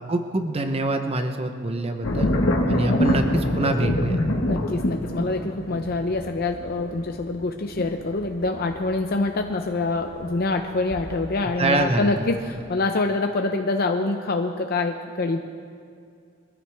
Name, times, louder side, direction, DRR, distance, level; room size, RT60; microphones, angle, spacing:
voice 1, 0.1-2.3 2.7-4.2 11.6-12.3, right 2 dB, 30° right, 6 dB, 0.8 m, -25 dB
sound 1, 2.0-11.7 12.1-12.6, left 1 dB, 70° left, 1.4 m, -26 dB
voice 2, 4.4-15.4, left 3 dB, 50° left, 4 dB, 0.6 m, -25 dB
23.0 x 14.5 x 3.4 m, 2.3 s
head